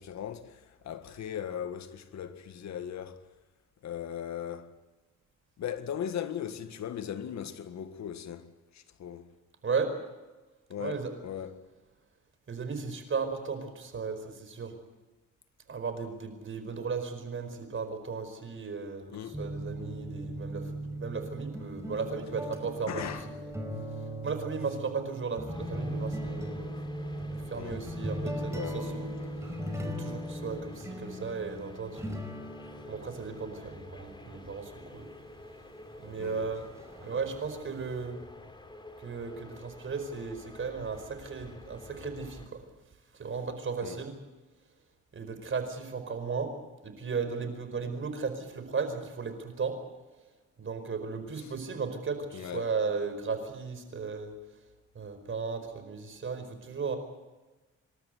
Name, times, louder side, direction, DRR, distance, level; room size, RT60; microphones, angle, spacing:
voice 1, 0.0-3.2 3.8-4.7 5.6-8.5 8.7-9.3 10.7-11.6 19.1-19.4 22.9-23.3 26.7-26.8 27.6-27.8 28.5-29.4 36.2-36.5 43.8-44.0 51.4-51.5 52.3-52.7, left 9 dB, 65° left, 1.9 m, -38 dB
voice 2, 10.8-11.2 12.5-14.7 15.7-20.7 21.0-23.5 24.2-26.8 27.3-29.1 29.7-32.2 32.9-35.1 36.0-36.7 37.0-38.2 39.0-42.6 43.1-44.1 45.1-46.5 46.8-49.8 50.6-54.3 54.9-57.0, right 5 dB, 40° right, 4.9 m, -35 dB
sound 1, 19.3-38.0, equal, 10° right, 5.1 m, -39 dB
sound 2, 25.5-42.5, left 1 dB, 15° left, 3.1 m, -49 dB
27.0 x 13.0 x 9.4 m
cardioid pair, 90°, 30 cm